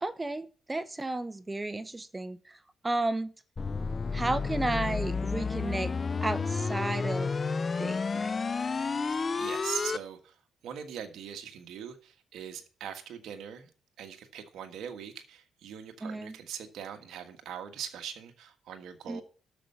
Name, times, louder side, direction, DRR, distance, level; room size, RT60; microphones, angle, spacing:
voice 1, 0.0-2.6 2.8-3.3 4.1-5.9 6.2-7.3 7.8-8.3 16.0-16.4 19.1-19.2, right 2 dB, 15° right, 15 dB, 0.7 m, -33 dB
sound 1, 3.6-10.0, left 4 dB, 35° left, 0.4 m, -31 dB
voice 2, 9.4-10.3 10.6-13.7 14.0-19.2, right 8 dB, 75° right, 5 dB, 1.5 m, -41 dB
10.0 x 6.6 x 7.0 m, 0.39 s
cardioid pair, 100°, 0 cm